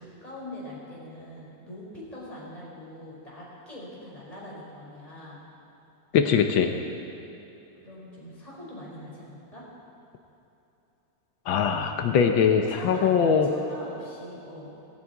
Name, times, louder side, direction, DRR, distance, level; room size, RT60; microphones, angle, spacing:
voice 1, 0.0-5.4 7.8-9.6 12.7-13.1 13.4-14.7, left 1 dB, 20° left, -6 dB, 5.0 m, -43 dB
voice 2, 6.1-6.7 11.5-13.5, left 7 dB, 90° left, 5 dB, 1.7 m, -22 dB
18.0 x 17.0 x 4.7 m, 2.9 s
omnidirectional pair, 2.1 m